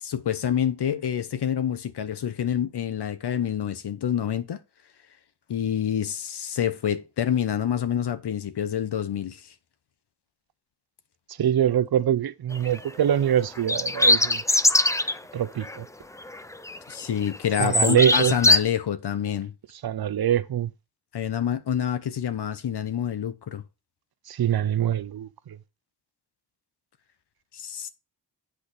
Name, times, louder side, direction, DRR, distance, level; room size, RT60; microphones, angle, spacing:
voice 1, 0.0-4.6 5.5-9.4 16.9-19.5 21.1-23.6 27.5-27.9, left 9 dB, 65° left, 1.0 m, -27 dB
voice 2, 11.4-14.4 15.3-15.9 17.6-18.3 19.8-20.7 24.3-25.6, right 10 dB, 60° right, 0.7 m, -24 dB
sound 1, 12.5-12.8 13.6-15.2 15.6-15.8 16.2-16.9 17.2-18.6, left 2 dB, 10° left, 0.4 m, -21 dB
8.4 x 5.0 x 4.1 m
wide cardioid pair, 100°, 42 cm